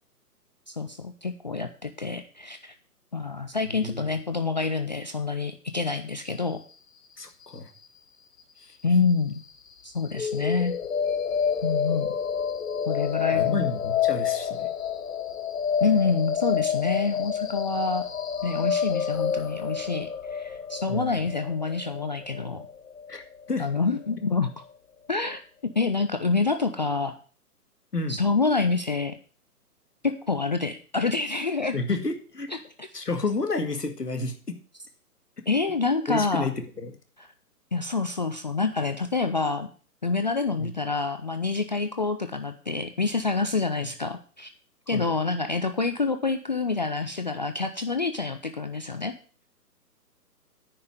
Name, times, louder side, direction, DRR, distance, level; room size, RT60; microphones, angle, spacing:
voice 1, 0.7-2.7 3.1-6.6 8.8-9.4 9.8-10.7 11.6-12.1 12.9-13.7 15.8-18.1 18.4-22.6 23.6-24.5 25.1-27.2 28.1-29.1 30.0-31.8 32.5-32.9 35.5-36.4 37.2-37.3 37.7-39.7 40.0-44.5 44.9-49.2, left 4 dB, 30° left, 8 dB, 0.5 m, -27 dB
voice 2, 3.7-4.1 7.2-7.7 8.6-8.7 13.3-14.7 20.9-21.3 23.1-23.7 27.9-28.2 31.7-32.5 32.9-34.6 36.1-37.0 40.6-40.8 43.8-43.9 44.9-45.2, left 3 dB, 80° left, 6 dB, 2.1 m, -31 dB
sound 1, 10.1-24.1, left 8 dB, 55° left, 1.4 m, -29 dB
9.8 x 5.4 x 7.8 m, 0.40 s
figure-of-eight pair, 135°, 47 cm